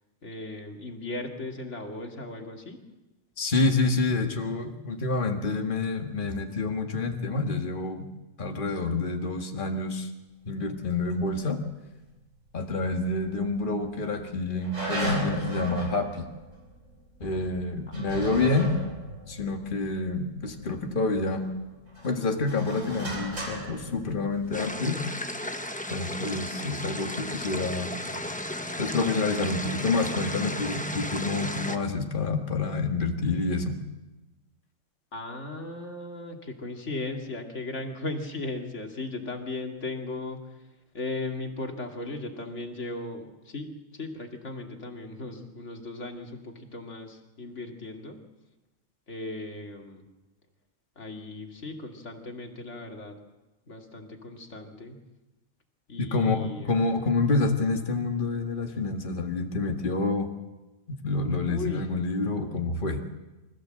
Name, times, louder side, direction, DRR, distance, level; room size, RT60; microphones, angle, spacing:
voice 1, 0.2-2.8 35.1-40.4 40.9-43.7 43.9-48.2 49.1-50.0 51.0-53.2 53.7-55.0 55.9-56.7 61.5-61.8, left 2 dB, 65° left, 2 dB, 2.7 m, -37 dB
voice 2, 3.4-8.1 8.4-10.1 10.5-11.6 12.5-16.3 17.2-18.8 19.3-21.5 22.0-25.0 25.9-27.9 28.8-33.8 56.0-60.3 60.9-63.0, left 3 dB, 40° left, 3 dB, 1.9 m, -28 dB
sound 1, 12.7-13.5 13.9-14.0 14.6-20.8 21.3-24.7, right 1 dB, 70° right, 4.7 m, -36 dB
sound 2, 24.5-31.8, left 1 dB, 5° left, 0.9 m, -34 dB
25.0 x 15.0 x 7.7 m, 1.1 s
omnidirectional pair, 1.3 m